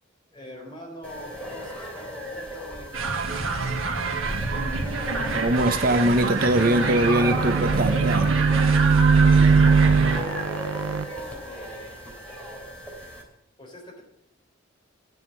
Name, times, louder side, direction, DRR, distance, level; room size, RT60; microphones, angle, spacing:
voice 1, 0.3-2.9 9.1-11.9 13.6-14.0, left 2 dB, 25° left, -1 dB, 4.1 m, -42 dB
sound 1, 1.0-13.2, equal, 5° left, 3.3 m, -37 dB
sound 2, 2.9-10.2, right 4 dB, 85° right, 1.6 m, -27 dB
voice 2, 5.3-8.3, right 1 dB, 45° right, 8 dB, 0.8 m, -22 dB
sound 3, 6.3-11.1, right 5 dB, 65° right, 0.4 m, -21 dB
11.5 x 7.4 x 9.4 m, 0.82 s
head